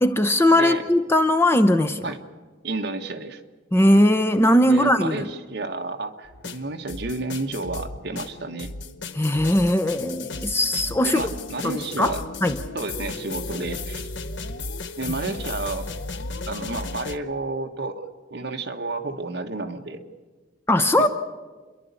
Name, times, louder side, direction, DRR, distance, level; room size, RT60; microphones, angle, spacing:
voice 1, 0.0-2.1 3.7-5.3 9.1-11.2 11.6-12.6 20.7-21.1, left 1 dB, 10° left, 9 dB, 0.7 m, -19 dB
voice 2, 2.6-3.4 4.7-8.7 11.0-12.2 12.7-14.0 15.0-15.9 16.5-20.0 21.0-21.1, right 3 dB, 55° right, 5 dB, 1.3 m, -31 dB
sound 1, 6.3-17.2, left 3 dB, 65° left, 0.8 m, -35 dB
28.5 x 11.5 x 8.3 m, 1.3 s
head